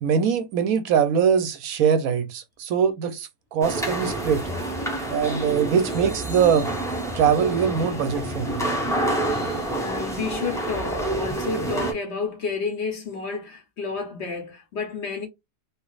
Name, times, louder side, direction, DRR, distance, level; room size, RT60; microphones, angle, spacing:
voice 1, 0.0-4.4 5.1-6.7 7.1-8.6, right 7 dB, 75° right, 1.0 m, -22 dB
sound 1, 3.6-11.9, right 1 dB, 5° left, 0.3 m, -28 dB
voice 2, 9.3-15.3, left 4 dB, 50° left, 1.0 m, -31 dB
3.3 x 2.4 x 2.4 m
omnidirectional pair, 1.6 m